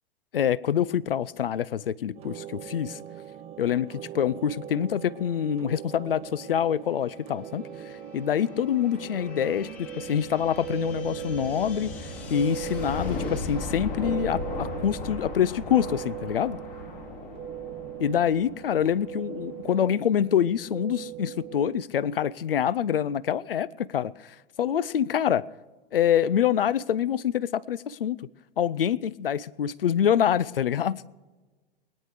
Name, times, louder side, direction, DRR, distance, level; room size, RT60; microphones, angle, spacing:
voice 1, 0.3-3.0 3.6-11.9 12.3-16.6 18.0-25.4 25.9-28.3 28.6-31.0, left 9 dB, 70° left, 0.5 m, -26 dB
sound 1, 2.2-21.8, right 12 dB, 20° right, 0.7 m, -40 dB
sound 2, 6.7-20.0, left 3 dB, 45° left, 3.9 m, -38 dB
21.0 x 9.8 x 4.9 m
figure-of-eight pair, 100°, 29 cm